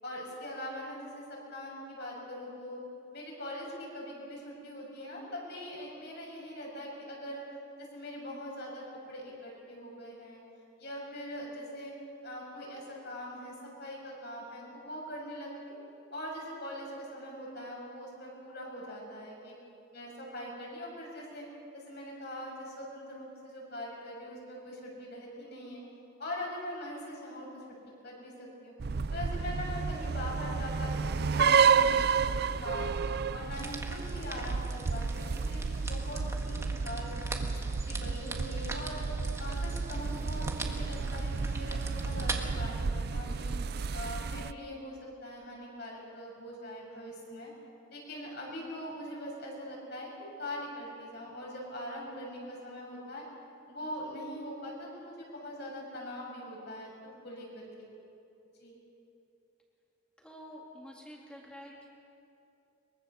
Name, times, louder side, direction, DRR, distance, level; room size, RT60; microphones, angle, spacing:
voice 1, 0.0-2.8 3.1-7.4 7.8-10.4 10.8-11.9 12.2-15.8 16.1-19.5 19.9-21.5 21.7-25.8 26.2-27.5 28.0-28.7 29.1-32.9 33.3-37.1 37.5-37.6 37.9-39.1 39.4-43.6 43.9-47.5 47.9-50.1 50.4-53.3 53.7-57.9 58.6-58.7, left 1 dB, 55° left, -2 dB, 7.0 m, -42 dB
sound 1, 28.8-44.5, right 5 dB, 50° right, 0.4 m, -31 dB
sound 2, 33.5-42.4, right 3 dB, 15° right, 1.6 m, -43 dB
voice 2, 60.2-61.9, equal, 5° left, -2 dB, 3.3 m, -48 dB
23.5 x 23.0 x 7.0 m, 2.8 s
head